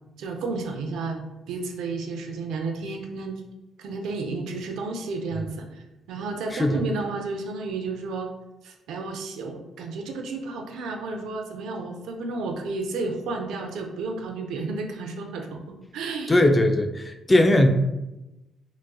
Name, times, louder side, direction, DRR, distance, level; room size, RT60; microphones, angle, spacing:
voice 1, 0.2-1.2 1.5-3.4 3.8-5.8 6.1-8.3 8.6-15.6 15.9-16.4 17.5-17.7, right 3 dB, 85° right, 3 dB, 0.4 m, -32 dB
voice 2, 16.3-17.7, left 1 dB, 20° left, 6 dB, 0.3 m, -19 dB
4.0 x 2.3 x 2.3 m, 0.98 s
cardioid pair, 90°, 0 cm